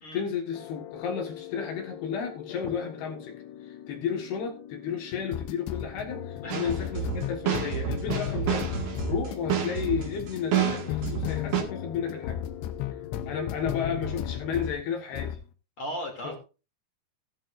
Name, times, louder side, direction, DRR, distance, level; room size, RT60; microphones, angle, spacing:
voice 1, 0.1-12.4 13.3-15.4 16.2-16.4, left 7 dB, 70° left, 3 dB, 3.5 m, -33 dB
sound 1, 0.5-14.8 15.1-15.4, left 10 dB, 85° left, 3.1 m, -36 dB
voice 2, 6.4-6.9 15.8-16.4, equal, 35° left, 2 dB, 3.1 m, -37 dB
sound 2, 6.5-11.6, right 9 dB, 50° right, 2.2 m, -29 dB
15.5 x 11.0 x 2.6 m, 0.31 s
omnidirectional pair, 4.9 m